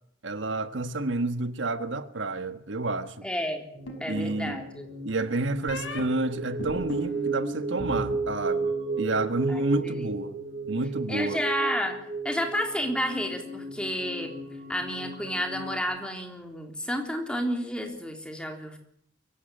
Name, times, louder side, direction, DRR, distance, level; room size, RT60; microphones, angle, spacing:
voice 1, 0.2-3.2 4.1-4.6 5.0-10.3 10.7-11.4, right 2 dB, 80° right, 1.4 m, -29 dB
voice 2, 3.2-3.6 4.0-4.9 9.5-10.1 11.1-12.0 12.2-14.3 14.7-18.8, equal, 5° left, 3.5 m, -31 dB
sound 1, 3.7-15.8, right 3 dB, 45° right, 4.7 m, -34 dB
sound 2, 3.9-4.7 5.7-6.0 6.6-8.1 8.4-9.0, right 1 dB, 80° left, 5.7 m, -36 dB
23.0 x 16.0 x 9.0 m
head